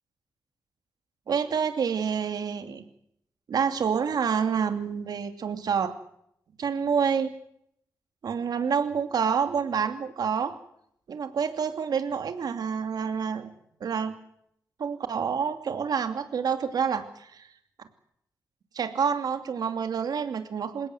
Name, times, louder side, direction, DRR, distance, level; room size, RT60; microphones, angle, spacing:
voice 1, 1.3-2.9 3.5-5.9 6.6-7.3 8.2-10.5 11.1-13.5 13.8-14.1 14.8-17.5 17.8-17.9 18.7-20.9, right 6 dB, 65° right, 8 dB, 2.8 m, -28 dB
28.0 x 17.0 x 8.0 m, 0.71 s
wide cardioid pair, 170°, 7 cm